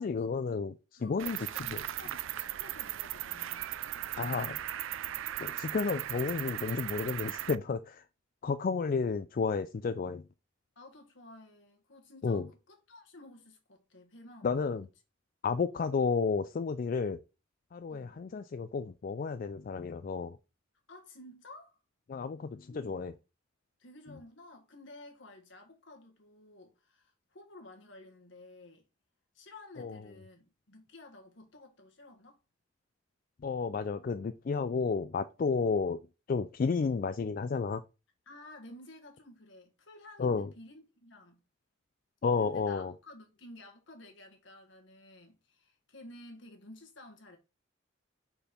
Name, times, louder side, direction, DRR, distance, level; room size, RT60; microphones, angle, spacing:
voice 1, 0.0-1.8 4.2-4.6 5.4-8.0 8.4-10.2 12.2-12.5 14.4-14.9 15.4-17.2 17.7-20.4 22.1-23.1 29.8-30.0 33.4-36.0 36.3-37.8 40.2-40.5 42.2-42.9, left 5 dB, 45° left, 0.3 m, -32 dB
voice 2, 0.9-4.4 10.8-14.9 17.9-18.2 20.9-21.8 22.7-23.2 23.8-28.9 29.3-32.4 38.3-41.4 42.4-47.4, left 1 dB, 70° left, 1.6 m, -53 dB
Cricket, 1.2-7.6, right 13 dB, 85° right, 0.4 m, -37 dB
5.2 x 4.4 x 4.3 m
head